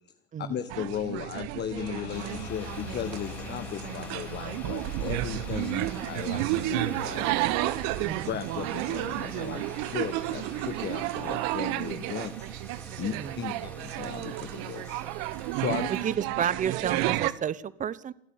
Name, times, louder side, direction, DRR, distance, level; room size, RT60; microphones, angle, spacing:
voice 1, 0.4-7.3 8.3-12.5 13.0-15.0 15.3-15.9, left 9 dB, 30° left, 10 dB, 1.3 m, -36 dB
sound 1, 0.7-17.3, right 17 dB, 55° right, 1.2 m, -32 dB
sound 2, 1.7-11.5, left 9 dB, 70° left, 3.0 m, -45 dB
Water, 2.1-16.2, left 1 dB, 5° left, 3.8 m, -48 dB
voice 2, 15.9-18.1, right 8 dB, 25° right, 20 dB, 0.9 m, -31 dB
28.5 x 9.7 x 9.4 m, 0.73 s
hypercardioid pair, 95°, 33 cm